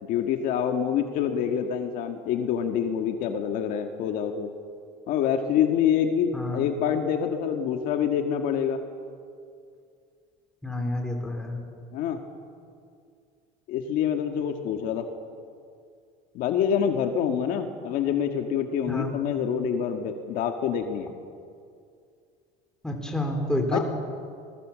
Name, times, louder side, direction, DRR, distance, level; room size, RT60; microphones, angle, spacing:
voice 1, 0.0-4.5 5.1-8.8 11.9-12.2 13.7-15.0 16.3-21.1 23.7-23.8, left 8 dB, 60° left, 5 dB, 1.9 m, -26 dB
voice 2, 6.3-6.7 10.6-11.6 18.9-19.1 22.8-23.8, left 1 dB, 5° left, 2 dB, 3.7 m, -29 dB
26.5 x 20.5 x 7.6 m, 2.3 s
cardioid pair, 155°, 16 cm